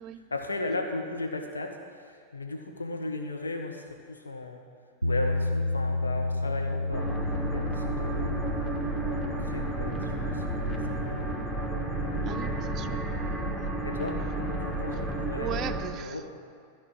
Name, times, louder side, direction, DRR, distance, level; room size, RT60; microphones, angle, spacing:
voice 1, 0.3-4.6 5.0-7.1 7.5-8.4 9.0-11.3 13.8-16.3, left 2 dB, 75° left, 3 dB, 1.2 m, -36 dB
Bass guitar, 5.0-11.3, left 2 dB, 85° right, 0.3 m, -31 dB
sound 1, 6.9-15.9, right 2 dB, 10° left, 1.7 m, -32 dB
voice 2, 12.2-13.2 13.6-13.7 15.3-16.2, right 10 dB, 30° right, 9 dB, 0.5 m, -38 dB
14.0 x 5.4 x 8.9 m, 2.2 s
figure-of-eight pair, 90°, 0 cm